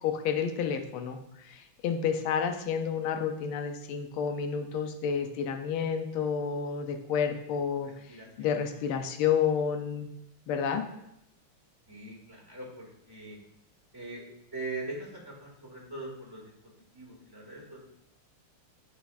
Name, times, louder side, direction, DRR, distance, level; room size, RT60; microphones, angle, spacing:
voice 1, 0.0-1.2 1.4-7.9 8.4-10.1 10.5-10.9, left 7 dB, 90° left, 5 dB, 1.6 m, -30 dB
voice 2, 7.8-8.9 11.9-13.4 13.9-14.2 14.5-16.5 16.9-17.9, right 2 dB, 10° right, -5 dB, 2.1 m, -42 dB
9.2 x 6.8 x 2.5 m, 0.81 s
omnidirectional pair, 2.3 m